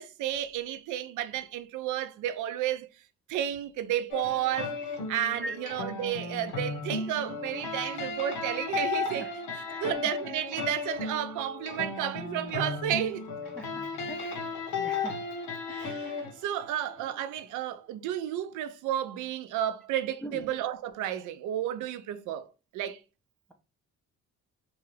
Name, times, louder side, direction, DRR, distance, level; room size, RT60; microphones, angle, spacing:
voice 1, 0.0-2.9 3.3-4.8 5.1-13.3 15.7-23.0, right 11 dB, 80° right, 0.5 m, -32 dB
sound 1, 4.1-17.3, left 4 dB, 90° left, 0.8 m, -35 dB
voice 2, 14.1-14.4 14.8-15.2 20.2-20.5, right 1 dB, 5° left, 0.4 m, -40 dB
2.7 x 2.3 x 3.2 m
cardioid pair, 90°, 30 cm